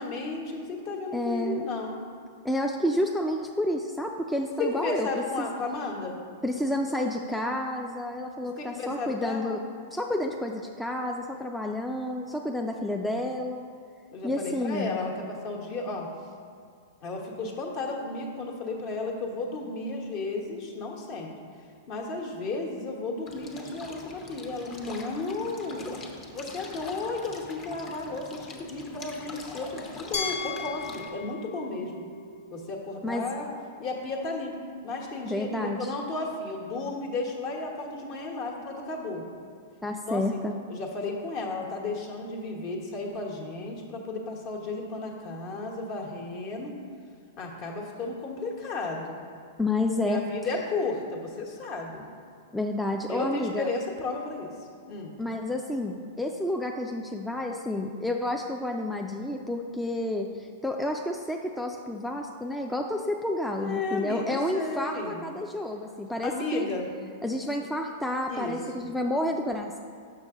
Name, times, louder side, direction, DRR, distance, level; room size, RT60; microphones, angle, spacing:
voice 1, 0.0-2.0 4.6-6.2 8.6-9.6 14.1-16.1 17.0-21.3 21.9-25.8 26.3-32.1 32.5-33.5 33.8-34.6 34.8-39.2 40.0-40.2 40.7-46.7 47.4-49.2 50.1-52.0 53.1-54.5 54.8-55.1 63.6-65.2 66.2-66.9 68.3-68.9, left 3 dB, 45° left, 0 dB, 1.2 m, -33 dB
voice 2, 1.1-1.6 2.4-5.1 5.4-5.5 6.4-9.6 9.9-13.7 14.2-15.0 33.0-33.2 35.3-35.9 39.8-40.6 49.6-50.2 52.5-53.7 55.2-66.7 67.2-69.8, left 1 dB, 5° left, 1 dB, 0.3 m, -30 dB
sound 1, 23.3-31.1, left 3 dB, 30° left, 0.8 m, -44 dB
Glass, 30.1-33.0, left 5 dB, 70° left, 0.9 m, -36 dB
6.1 x 5.9 x 3.7 m, 2.3 s
hypercardioid pair, 130°, 0 cm